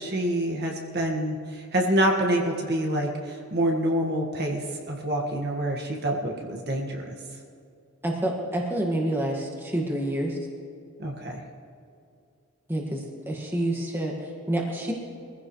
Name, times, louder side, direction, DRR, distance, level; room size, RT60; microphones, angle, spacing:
voice 1, 0.0-7.2 11.0-11.4, right 1 dB, 50° right, 0 dB, 1.7 m, -27 dB
voice 2, 8.0-10.4 12.7-14.9, right 1 dB, 10° right, -1 dB, 1.9 m, -28 dB
23.0 x 15.5 x 3.2 m, 2.4 s
head